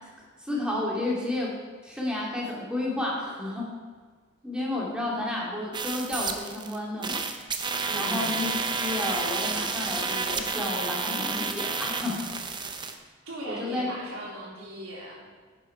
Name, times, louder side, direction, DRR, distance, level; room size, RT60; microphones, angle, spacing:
voice 1, 0.4-1.5 1.8-3.7 4.4-7.2 7.9-8.5 8.7-12.2 13.5-13.9, left 2 dB, 5° right, -4 dB, 2.5 m, -31 dB
sound 1, 5.7-6.8 7.0-12.9, right 4 dB, 20° right, 0.8 m, -30 dB
voice 2, 7.9-8.4 13.3-15.3, right 1 dB, 85° right, -4 dB, 3.8 m, -38 dB
11.0 x 9.3 x 4.6 m, 1.5 s
head